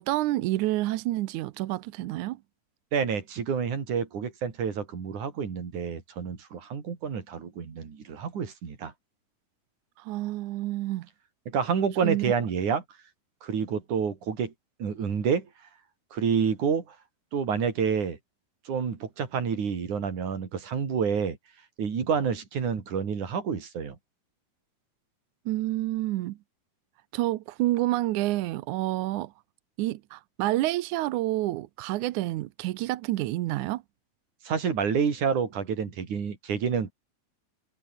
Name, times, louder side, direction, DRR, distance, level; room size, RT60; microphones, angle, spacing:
voice 1, 0.0-2.4 10.0-11.1 12.0-12.3 25.5-26.4 27.1-29.3 29.8-33.8, right 16 dB, 75° right, 1.9 m, -28 dB
voice 2, 2.9-8.9 11.5-12.8 13.4-14.5 14.8-15.5 16.1-17.0 17.3-18.2 18.7-21.4 21.8-24.0 34.4-36.9, right 6 dB, 60° right, 4.8 m, -28 dB
omnidirectional pair, 4.1 m